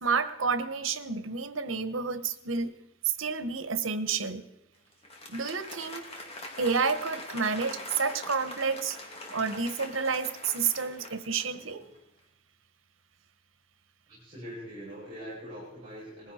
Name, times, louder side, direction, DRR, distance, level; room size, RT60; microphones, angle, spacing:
voice 1, 0.0-2.7 3.0-4.4 5.3-6.1 6.6-9.0 9.3-11.8, right 5 dB, 90° right, 12 dB, 1.2 m, -30 dB
Applause, 4.9-11.9, left 2 dB, 30° left, 2.6 m, -43 dB
voice 2, 14.1-16.3, equal, 25° right, -7 dB, 7.4 m, -43 dB
20.5 x 15.5 x 4.4 m, 0.90 s
head